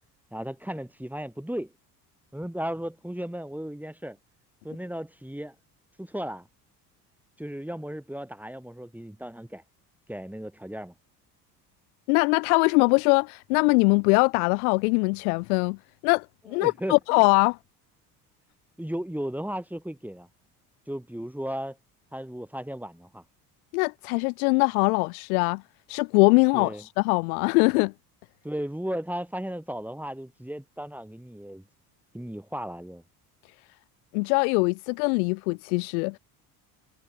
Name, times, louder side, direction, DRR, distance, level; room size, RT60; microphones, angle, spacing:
voice 1, 0.3-1.7 2.3-4.2 4.6-5.5 6.0-6.5 7.4-9.6 10.1-10.9 16.6-17.2 18.8-20.3 20.9-21.8 22.1-23.2 26.5-26.8 28.4-31.6 32.1-33.0, equal, 5° right, 4.0 m, -35 dB
voice 2, 12.1-17.6 23.7-25.6 25.9-27.9 34.1-36.2, left 31 dB, 65° left, 1.3 m, -22 dB
figure-of-eight pair, 60°, 46 cm